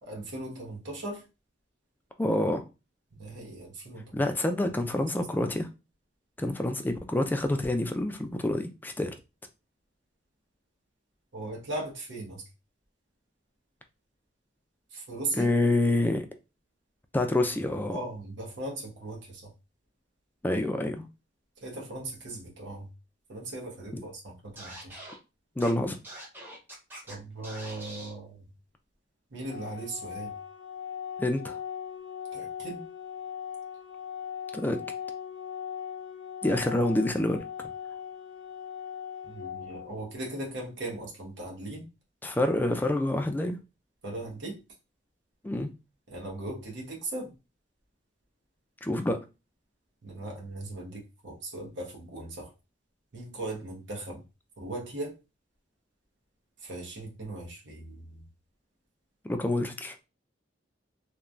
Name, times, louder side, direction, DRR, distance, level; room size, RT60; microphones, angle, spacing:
voice 1, 0.0-1.3 3.2-4.2 4.9-5.1 5.4-5.5 11.3-12.4 14.9-15.5 17.9-19.5 21.6-22.9 23.3-25.0 27.1-28.4 29.3-30.4 32.3-32.9 39.2-41.9 44.0-44.6 46.1-47.4 50.0-52.5 53.1-54.2 54.6-55.1 56.6-58.2, right 2 dB, 70° right, 0.9 m, -38 dB
voice 2, 2.2-2.6 4.1-5.7 6.4-9.1 15.3-16.3 17.1-18.0 20.4-21.1 25.6-26.0 31.2-31.6 34.5-34.8 36.4-37.7 42.2-43.6 45.4-45.7 48.8-49.2 59.2-59.9, left 1 dB, 10° left, 0.3 m, -27 dB
Scratching (performance technique), 24.6-25.2 25.6-25.7 26.0-27.1 27.4-28.1, right 1 dB, 10° right, 0.8 m, -44 dB
Organ, 29.5-40.5, left 8 dB, 80° left, 0.5 m, -39 dB
3.1 x 2.1 x 2.4 m
head